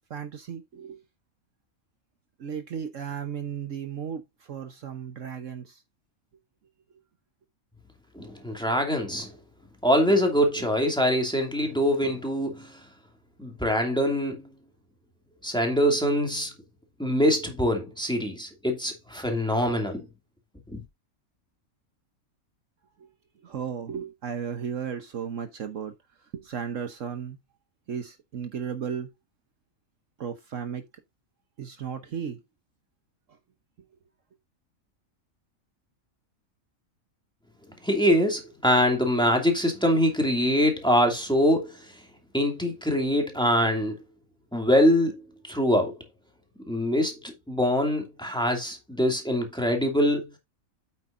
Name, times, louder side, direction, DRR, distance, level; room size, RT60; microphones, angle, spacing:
voice 1, 0.1-1.0 2.4-4.2 4.5-5.8 23.4-25.9 26.3-27.4 27.9-29.1 30.2-30.8 31.6-32.4, right 7 dB, 65° right, 1.3 m, -34 dB
voice 2, 8.1-9.3 9.8-12.9 13.4-14.5 15.4-16.5 17.0-20.1 20.7-20.8 37.8-42.0 42.3-44.0 44.5-45.2 45.5-46.0 46.7-50.3, equal, 5° left, 2.5 m, -24 dB
8.8 x 7.8 x 2.6 m
omnidirectional pair, 1.5 m